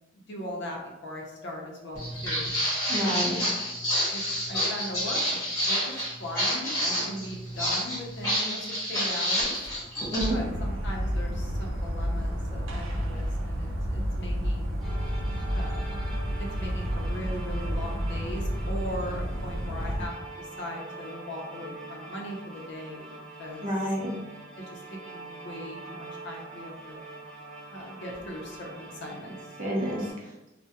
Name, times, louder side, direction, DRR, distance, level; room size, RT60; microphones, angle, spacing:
voice 1, 0.1-2.5 3.2-3.5 4.1-4.2 4.5-5.9 6.2-9.5 10.3-14.8 15.5-16.0 16.4-23.1 23.4-23.7 24.6-27.0 27.7-29.4, equal, 60° left, 0 dB, 0.5 m, -39 dB
Walk footsteps, 2.0-10.3, equal, 15° left, 1.2 m, -28 dB
voice 2, 2.9-3.4 10.1-10.4 23.6-24.1 29.6-30.3, right 1 dB, 45° right, -3 dB, 0.7 m, -29 dB
sound 1, 10.2-20.1, equal, 90° right, 0.4 m, -30 dB
sound 2, 14.8-30.1, right 2 dB, ahead, 0.6 m, -44 dB
2.2 x 2.1 x 2.8 m, 0.97 s
head